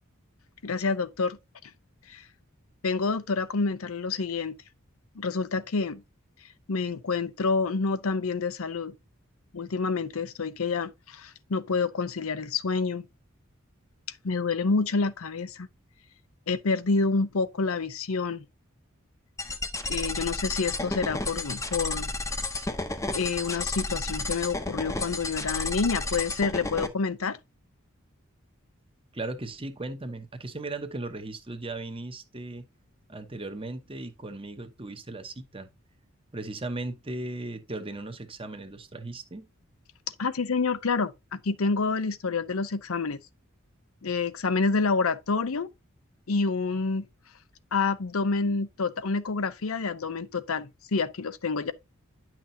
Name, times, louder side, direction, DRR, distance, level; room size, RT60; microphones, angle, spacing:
voice 1, 0.6-1.4 2.1-2.2 2.8-4.5 5.2-6.0 6.7-8.9 9.5-13.1 14.2-15.7 16.5-18.4 19.9-22.1 23.1-27.4 40.2-43.2 44.0-45.7 46.3-47.0 47.7-51.7, left 4 dB, 80° left, 0.7 m, -28 dB
sound 1, 19.4-26.9, left 2 dB, 15° left, 0.8 m, -32 dB
voice 2, 29.1-32.7 33.1-35.7 36.3-39.5, right 2 dB, 25° right, 1.0 m, -37 dB
10.0 x 6.0 x 2.8 m
head